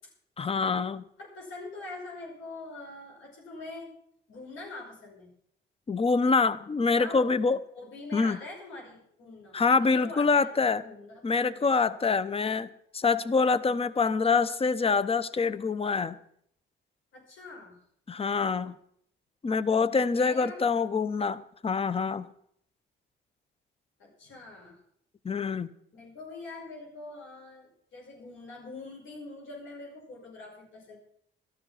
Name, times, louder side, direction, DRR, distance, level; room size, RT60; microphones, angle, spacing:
voice 1, 0.4-1.0 5.9-7.6 8.1-8.4 9.5-10.8 11.2-12.7 12.9-16.2 18.1-18.7 19.4-22.3 25.2-25.7, left 4 dB, 30° left, 17 dB, 0.9 m, -25 dB
voice 2, 1.2-3.9 4.3-5.3 7.0-7.3 7.8-11.7 12.3-12.5 17.1-17.8 20.0-20.7 24.0-24.8 25.9-31.0, left 2 dB, 75° left, -1 dB, 5.6 m, -44 dB
13.0 x 12.5 x 5.8 m, 0.67 s
cardioid pair, 90°, 20 cm